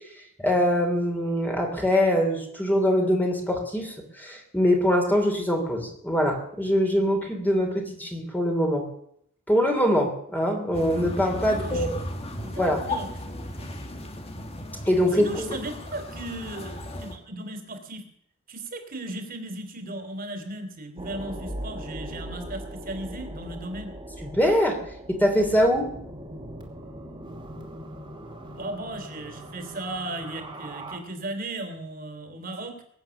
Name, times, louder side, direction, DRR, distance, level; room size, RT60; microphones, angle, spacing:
voice 1, 0.4-8.8 9.5-11.9 12.5-12.9 14.9-15.5 24.2-24.8 25.1-25.9, equal, 10° left, 1 dB, 3.0 m, -23 dB
sound 1, 10.7-17.2, left 1 dB, 30° left, 1.8 m, -35 dB
voice 2, 11.4-11.9 12.4-13.1 13.8-13.9 15.1-18.0 18.5-23.9 28.5-32.8, right 2 dB, 40° right, 6 dB, 3.0 m, -36 dB
sound 2, 21.0-31.0, right 1 dB, 20° right, 2.7 m, -40 dB
22.0 x 9.0 x 7.0 m, 0.71 s
head